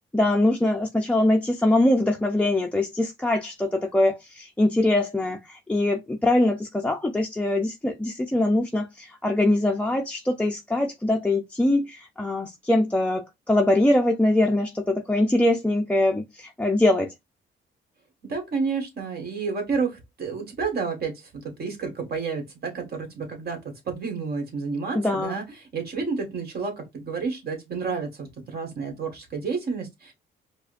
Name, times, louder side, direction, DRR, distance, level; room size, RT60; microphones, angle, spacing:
voice 1, 0.1-17.1 24.9-25.4, left 1 dB, 5° left, 0.4 m, -23 dB
voice 2, 18.2-25.4 25.7-30.1, right 5 dB, 50° right, 1.5 m, -30 dB
4.7 x 2.1 x 2.5 m
cardioid pair, 90°, 20 cm